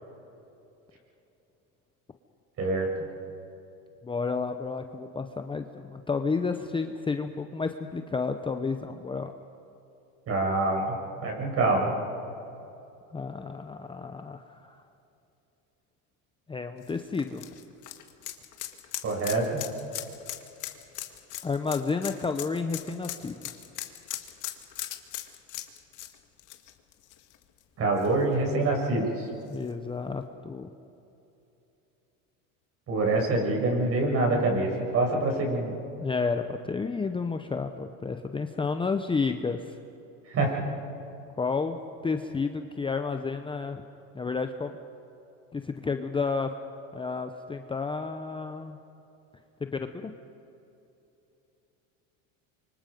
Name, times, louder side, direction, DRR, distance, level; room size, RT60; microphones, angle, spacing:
voice 1, 4.0-9.3 13.1-14.8 16.5-17.4 21.4-23.5 29.5-30.7 36.0-39.8 41.4-43.8 44.1-44.7 45.5-46.5 46.9-48.8 49.6-50.1, left 4 dB, 15° left, 7 dB, 0.8 m, -31 dB
voice 2, 10.3-10.8 11.2-11.9 19.0-19.6 27.8-29.3 32.9-35.7 40.3-40.6, right 2 dB, 40° right, 0 dB, 7.4 m, -25 dB
sound 1, 16.8-27.6 28.0-28.1 29.5-29.6, left 13 dB, 55° left, 1.9 m, -39 dB
26.5 x 24.5 x 5.4 m, 2.9 s
supercardioid pair, 120°, 38 cm